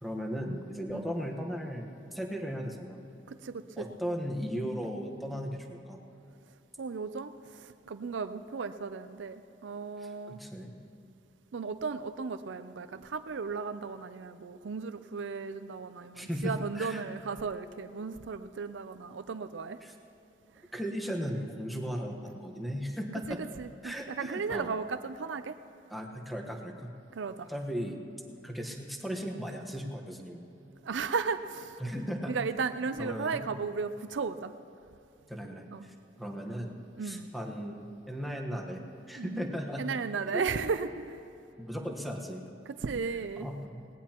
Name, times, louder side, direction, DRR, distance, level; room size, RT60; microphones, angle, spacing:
voice 1, 0.0-3.0 3.8-6.0 10.0-10.7 16.1-17.0 19.8-19.9 20.7-23.4 23.8-24.7 25.9-26.9 27.5-28.0 28.4-30.4 31.8-32.4 33.0-33.5 35.3-36.7 37.0-40.0 40.3-40.5 41.6-42.4 43.4-43.9, equal, ahead, 1 dB, 1.2 m, -37 dB
voice 2, 3.3-3.9 6.8-10.4 11.5-19.8 23.3-25.6 27.1-27.5 30.8-31.8 32.3-34.5 35.7-35.9 37.0-37.3 39.2-39.5 39.8-41.2 42.7-43.5, right 5 dB, 75° right, 10 dB, 0.5 m, -35 dB
20.5 x 18.5 x 3.0 m, 2.7 s
head